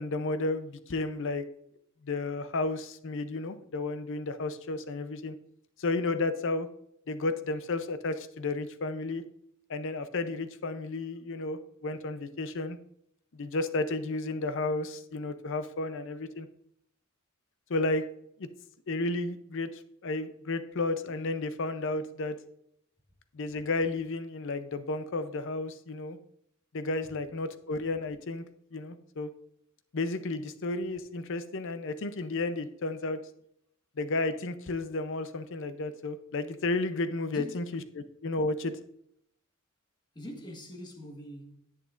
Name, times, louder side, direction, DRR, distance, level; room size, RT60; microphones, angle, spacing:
voice 1, 0.0-1.4 2.0-5.4 5.8-6.7 7.1-9.2 9.7-12.8 13.3-16.5 17.7-18.0 18.4-18.5 18.9-22.4 23.3-26.2 26.7-28.4 28.7-29.3 29.9-33.2 34.0-37.6 38.0-38.7, left 2 dB, 65° left, 0.6 m, -32 dB
voice 2, 37.3-37.7 40.1-41.6, left 1 dB, 20° left, 1.6 m, -43 dB
10.0 x 8.4 x 2.5 m
head